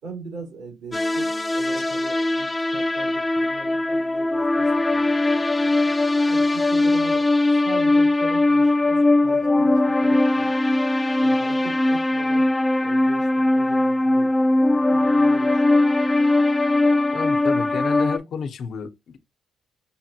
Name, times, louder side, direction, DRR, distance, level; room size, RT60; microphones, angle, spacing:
voice 1, 0.0-1.3 1.5-5.7 6.2-10.8 11.2-12.5 12.8-14.3 14.6-15.8, right 4 dB, 85° right, 2.8 m, -41 dB
sound 1, 0.9-18.2, left 2 dB, 15° left, 0.4 m, -20 dB
voice 2, 17.1-19.2, left 6 dB, 65° left, 0.8 m, -31 dB
5.5 x 2.6 x 2.8 m
cardioid pair, 90°, 0 cm